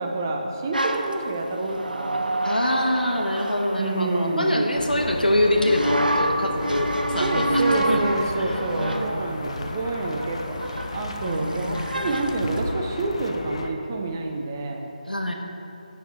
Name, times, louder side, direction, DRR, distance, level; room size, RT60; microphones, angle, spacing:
voice 1, 0.0-2.3 3.8-4.8 7.2-14.9, right 2 dB, 25° right, 2 dB, 0.5 m, -28 dB
sound 1, 0.7-4.7 5.6-12.7, right 1 dB, 80° right, 0.6 m, -28 dB
voice 2, 2.4-7.6 7.9-8.0 8.4-9.1 11.2-11.8 15.1-15.3, left 1 dB, 85° left, 2 dB, 1.0 m, -24 dB
sound 2, 4.7-13.7, left 2 dB, 45° left, 0.5 m, -35 dB
8.2 x 6.3 x 4.2 m, 3.0 s
figure-of-eight pair, 155°, 5 cm